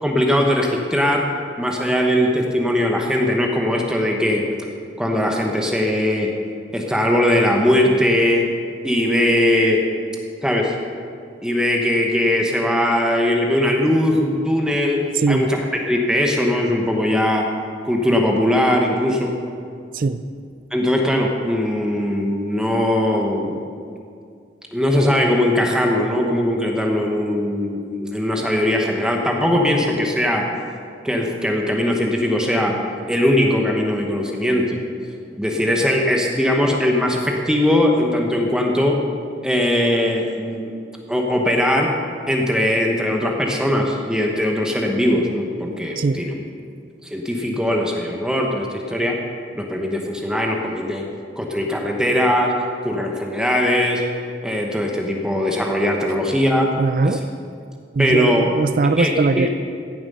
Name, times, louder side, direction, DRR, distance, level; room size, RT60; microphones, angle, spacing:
voice 1, 0.0-1.3 1.6-4.4 5.0-6.3 6.7-8.5 8.8-9.8 10.4-10.7 11.4-15.6 15.9-17.5 17.8-19.3 20.7-23.6 24.7-30.5 31.0-32.8 33.1-34.8 35.4-39.0 39.4-40.7 41.1-41.9 42.3-46.4 47.0-49.2 49.5-51.0 51.4-52.5 52.8-54.0 54.4-56.7 57.0-57.2 58.0-58.5 59.0-59.5, left 1 dB, 5° right, 0 dB, 1.0 m, -20 dB
voice 2, 15.1-15.5 19.9-20.2 46.0-46.2 56.8-57.2 57.9-59.5, right 3 dB, 50° right, 11 dB, 0.4 m, -20 dB
15.5 x 7.3 x 5.4 m, 2.3 s
head